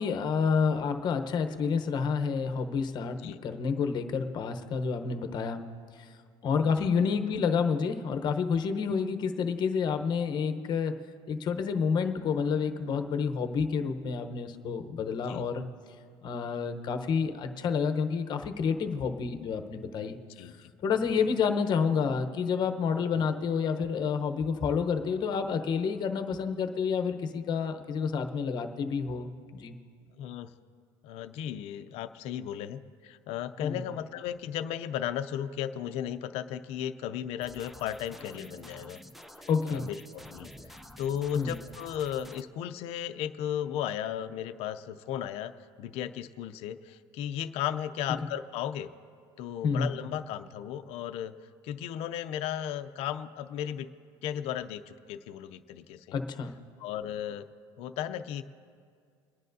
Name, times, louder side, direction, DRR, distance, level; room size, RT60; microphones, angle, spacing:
voice 1, 0.0-5.6 6.0-6.1 6.4-11.0 11.3-15.6 16.2-20.2 20.4-20.5 20.8-29.8 33.6-33.8 39.5-39.9 41.3-41.6 49.6-49.9 56.1-56.5, left 6 dB, 40° left, 6 dB, 0.9 m, -29 dB
voice 2, 20.4-20.7 21.2-21.3 23.1-23.2 30.2-30.5 31.0-39.0 39.4-40.0 40.3-45.5 45.8-48.9 49.4-51.3 51.6-53.9 54.2-56.2 56.8-57.5 57.8-58.4, left 10 dB, 60° left, 9 dB, 0.5 m, -35 dB
sound 1, 37.4-42.4, equal, ahead, 0.5 m, -49 dB
30.0 x 10.0 x 2.7 m, 2.1 s
cardioid pair, 140°, 11 cm